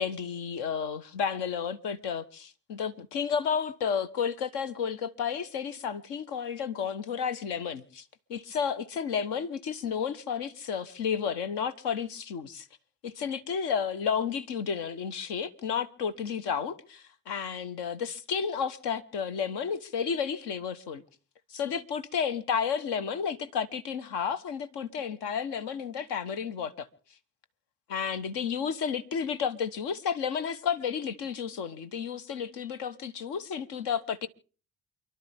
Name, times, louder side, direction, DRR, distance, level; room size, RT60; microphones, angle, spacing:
voice 1, 0.0-8.0 8.3-12.7 13.0-21.0 21.5-26.9 27.9-34.3, left 7 dB, 65° left, 1.4 m, -32 dB
28.5 x 12.0 x 3.6 m
hypercardioid pair, 55°, 44 cm